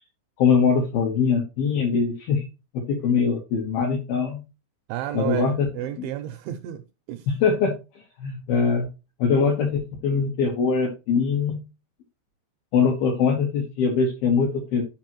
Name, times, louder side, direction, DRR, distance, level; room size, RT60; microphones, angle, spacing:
voice 1, 0.4-2.5 2.7-4.4 5.1-5.7 6.0-6.1 7.3-7.8 8.2-8.9 9.2-11.6 12.7-14.8, left 5 dB, 75° left, 2.2 m, -22 dB
voice 2, 4.9-6.8 7.1-7.3, right 13 dB, 85° right, 2.7 m, -31 dB
12.0 x 5.3 x 3.0 m
omnidirectional pair, 5.9 m